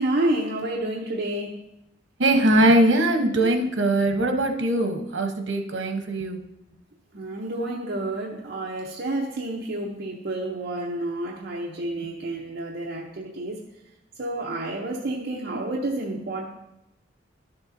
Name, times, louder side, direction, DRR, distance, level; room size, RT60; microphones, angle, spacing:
voice 1, 0.0-1.6 7.1-13.6 14.2-16.5, right 1 dB, 55° right, -3 dB, 0.8 m, -29 dB
voice 2, 2.2-6.4, right 1 dB, 85° right, 4 dB, 1.0 m, -21 dB
11.5 x 6.8 x 2.7 m, 0.87 s
head